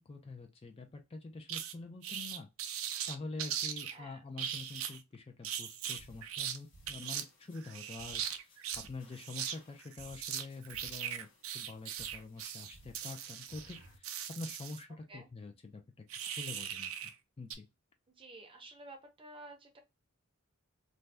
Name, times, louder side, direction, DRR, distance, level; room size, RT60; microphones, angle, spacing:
voice 1, 0.0-2.5 3.1-11.3 11.5-16.0 16.4-17.7, left 3 dB, 30° left, 0.4 m, -46 dB
sound 1, 1.5-1.7 2.0-4.0 4.4-5.0 5.4-6.6 6.9-7.2 7.6-8.9 9.1-9.6 9.8-14.8 16.1-17.1 17.5-17.6, right 9 dB, 80° right, 0.4 m, -39 dB
voice 2, 3.9-4.2 15.1-15.3 18.1-19.8, right 2 dB, 25° right, 0.6 m, -52 dB
sound 2, 6.0-14.0, equal, 65° left, 1.1 m, -60 dB
2.6 x 2.2 x 3.2 m
head